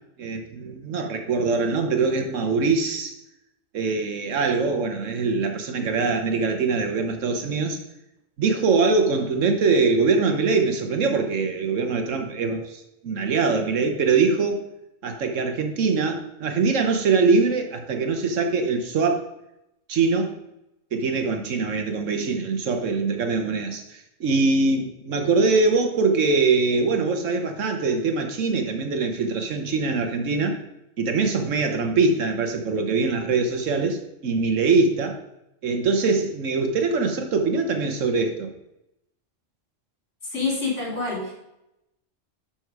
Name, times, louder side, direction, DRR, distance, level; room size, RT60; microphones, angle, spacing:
voice 1, 0.2-3.1 3.7-7.8 8.4-14.6 15.0-19.3 19.9-20.3 20.9-30.6 31.0-35.2 35.6-38.5, right 4 dB, 85° right, 6 dB, 1.4 m, -23 dB
voice 2, 40.2-41.3, left 3 dB, 65° left, -4 dB, 4.1 m, -27 dB
11.5 x 4.4 x 4.6 m, 0.86 s
omnidirectional pair, 1.3 m